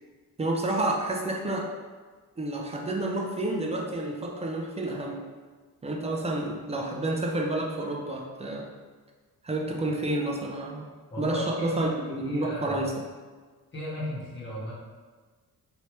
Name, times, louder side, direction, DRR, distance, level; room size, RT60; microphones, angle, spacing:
voice 1, 0.4-1.7 2.4-5.2 5.8-8.6 9.4-10.8 11.2-12.9, right 1 dB, 15° right, 0 dB, 0.5 m, -29 dB
voice 2, 11.1-11.9 12.2-12.8 13.7-14.7, equal, 30° left, -8 dB, 1.3 m, -35 dB
3.2 x 2.8 x 3.0 m, 1.4 s
cardioid pair, 105°, 37 cm